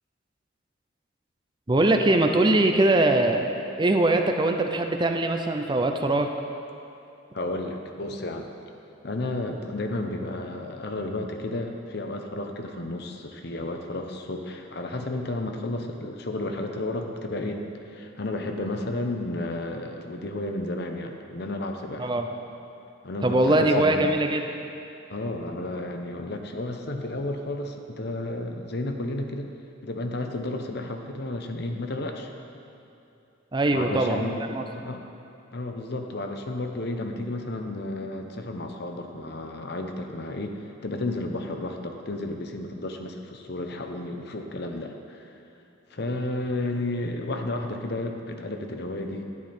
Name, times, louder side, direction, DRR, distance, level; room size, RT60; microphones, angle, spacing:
voice 1, 1.7-3.5 3.8-6.3 22.0-22.3 23.2-24.5 33.5-34.6, right 2 dB, 25° right, 5 dB, 0.5 m, -22 dB
voice 2, 7.3-8.5 9.0-22.1 23.0-24.1 25.1-29.5 29.8-32.3 33.7-35.0 35.5-45.3 45.9-49.2, left 2 dB, 55° left, 4 dB, 0.8 m, -32 dB
11.0 x 10.5 x 4.3 m, 2.7 s
head